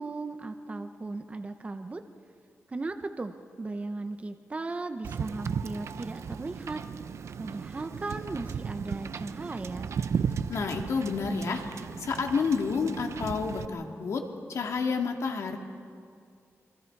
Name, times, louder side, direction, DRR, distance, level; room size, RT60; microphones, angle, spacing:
voice 1, 0.0-2.0 2.7-6.8 7.4-9.9, right 3 dB, 25° right, 7 dB, 0.8 m, -37 dB
Wind / Boat Water vehicle, 5.0-13.7, right 6 dB, 70° right, 0.6 m, -35 dB
voice 2, 10.5-11.7 12.0-15.6, left 5 dB, 85° left, 2 dB, 2.1 m, -29 dB
26.5 x 23.5 x 4.7 m, 2.2 s
wide cardioid pair, 135°, 5 cm